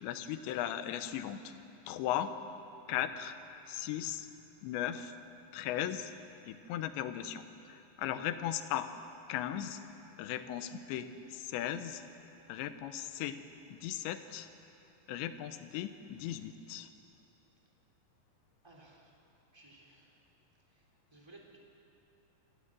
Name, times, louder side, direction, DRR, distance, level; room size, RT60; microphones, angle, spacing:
voice 1, 0.0-1.5 1.9-2.3 2.9-3.4 3.7-4.3 4.6-5.1 5.5-6.1 6.4-8.9 9.3-9.8 10.2-12.0 12.5-13.4 13.7-14.5 15.1-16.9, left 11 dB, 85° left, 10 dB, 3.2 m, -37 dB
voice 2, 18.6-19.1 19.5-20.2 20.7-20.8 21.1-21.6, right 2 dB, 10° right, -2 dB, 2.2 m, -58 dB
26.5 x 15.0 x 7.5 m, 2.8 s
omnidirectional pair, 5.0 m